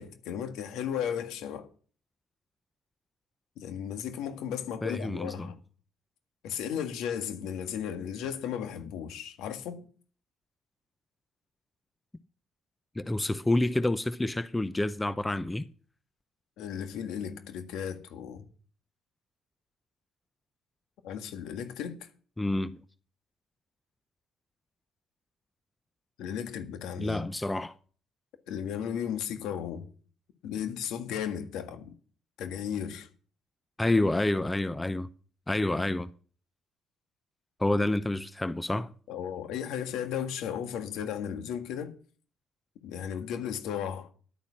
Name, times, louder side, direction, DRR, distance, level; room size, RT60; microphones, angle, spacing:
voice 1, 0.0-1.7 3.6-5.6 6.4-9.9 16.6-18.5 21.0-22.1 26.2-27.2 28.5-29.9 30.4-31.9 32.4-33.1 39.1-41.9 42.8-44.1, left 8 dB, 80° left, 1.7 m, -35 dB
voice 2, 4.8-5.5 13.0-15.7 22.4-22.8 27.0-27.7 33.8-35.1 35.5-36.1 37.6-38.9, left 1 dB, 10° left, 0.6 m, -28 dB
11.0 x 9.4 x 6.4 m
cardioid pair, 90°, 0 cm